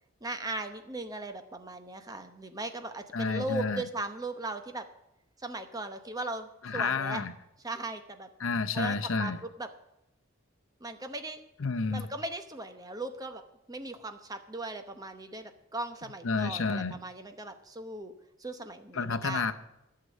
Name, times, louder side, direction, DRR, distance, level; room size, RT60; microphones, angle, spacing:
voice 1, 0.2-4.9 5.4-7.2 7.6-8.3 8.7-9.7 10.8-11.4 11.9-13.4 13.7-18.1 18.4-19.5, right 2 dB, 15° right, 7 dB, 0.8 m, -38 dB
voice 2, 3.1-3.8 6.6-7.3 8.4-9.4 11.6-12.1 16.2-17.0 18.9-19.5, left 4 dB, 70° left, 9 dB, 0.8 m, -30 dB
11.5 x 6.7 x 9.4 m, 0.88 s
head